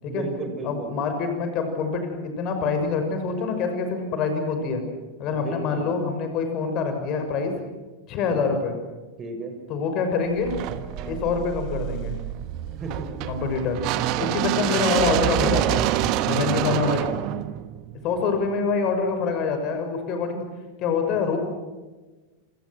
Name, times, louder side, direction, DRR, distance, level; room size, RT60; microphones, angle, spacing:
voice 1, 0.1-0.9 5.3-5.9 8.2-8.4 9.2-9.5 10.9-11.2 12.8-13.1 16.7-17.3 21.1-21.4, right 3 dB, 25° right, 6 dB, 5.8 m, -35 dB
voice 2, 0.6-4.8 5.2-7.5 8.1-8.8 9.7-10.5 11.0-12.2 13.3-13.8 14.2-15.9 16.3-17.1 18.0-20.5 20.8-21.4, left 5 dB, 35° left, 6 dB, 6.1 m, -25 dB
sound 1, 10.4-18.5, right 12 dB, 40° right, 1.5 m, -26 dB
28.5 x 28.0 x 6.2 m, 1.2 s
figure-of-eight pair, 90°, 0 cm